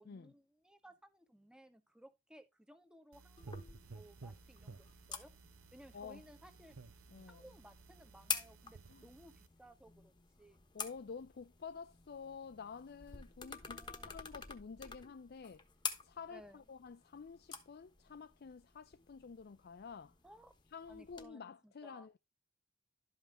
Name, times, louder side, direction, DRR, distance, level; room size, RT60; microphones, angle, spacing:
voice 1, 0.0-3.5 3.9-5.3 5.7-6.7 7.3-10.1 10.4-10.6 13.6-14.2 16.3-16.6 20.2-20.5 20.9-22.1, right 1 dB, 5° right, 1.1 m, -59 dB
sound 1, 3.1-9.5, right 3 dB, 85° right, 0.7 m, -55 dB
sound 2, 3.4-21.2, left 6 dB, 20° left, 1.1 m, -49 dB
voice 2, 7.1-7.4 8.9-9.1 10.7-15.6 16.0-20.1 20.7-22.2, left 5 dB, 50° left, 0.4 m, -50 dB
12.0 x 5.6 x 3.7 m
head